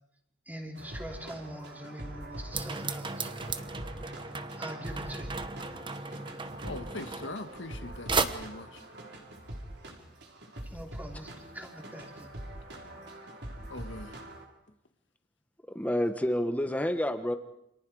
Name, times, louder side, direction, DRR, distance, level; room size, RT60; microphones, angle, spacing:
voice 1, 0.5-3.3 4.6-5.4 10.6-12.3, equal, 10° right, 2 dB, 3.3 m, -43 dB
sound 1, 0.7-14.4, right 1 dB, 60° right, 4.9 m, -44 dB
sound 2, 2.5-7.8 8.1-8.3, right 4 dB, 25° right, 1.1 m, -35 dB
voice 2, 6.6-8.8 13.7-14.2, left 2 dB, 70° left, 8 dB, 1.8 m, -41 dB
voice 3, 15.7-17.4, equal, 10° left, 8 dB, 1.4 m, -29 dB
29.0 x 27.0 x 5.0 m, 0.78 s
head